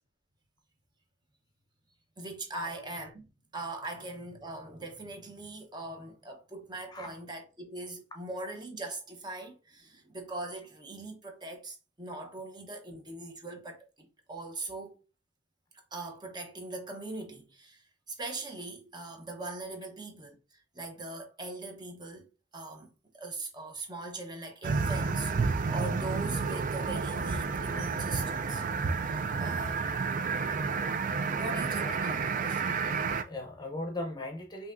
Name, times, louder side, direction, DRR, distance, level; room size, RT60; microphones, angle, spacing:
voice 1, 2.2-14.9 15.9-22.3 22.5-22.9 23.1-28.6 29.1-29.9 31.3-32.2 32.5-32.6, right 2 dB, 25° right, 1.0 m, -41 dB
sound 1, 24.6-33.2, right 4 dB, 50° right, 0.4 m, -30 dB
voice 2, 32.9-34.7, left 2 dB, 25° left, 0.7 m, -39 dB
5.5 x 2.8 x 2.6 m
head